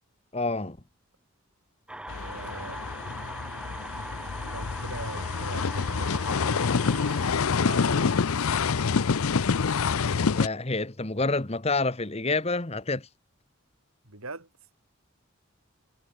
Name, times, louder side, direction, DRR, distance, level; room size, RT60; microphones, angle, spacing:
voice 1, 0.3-0.8 10.3-13.1, left 3 dB, 30° left, 1.3 m, -28 dB
sound 1, 1.9-7.3, right 1 dB, 5° right, 0.6 m, -40 dB
sound 2, 2.1-10.5, left 5 dB, 90° left, 0.6 m, -27 dB
voice 2, 2.2-2.9 4.4-7.2 7.6-8.2 14.0-14.5, right 3 dB, 85° right, 5.6 m, -41 dB
head